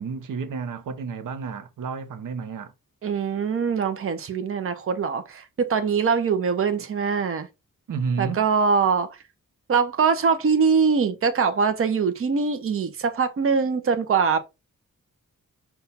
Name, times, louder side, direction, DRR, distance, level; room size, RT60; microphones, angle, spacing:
voice 1, 0.0-2.7 7.9-8.5, right 5 dB, 85° right, 0.7 m, -31 dB
voice 2, 3.0-7.5 8.2-9.1 9.7-14.4, right 5 dB, 45° right, 0.6 m, -23 dB
5.4 x 2.3 x 4.1 m
wide cardioid pair, 135°, 31 cm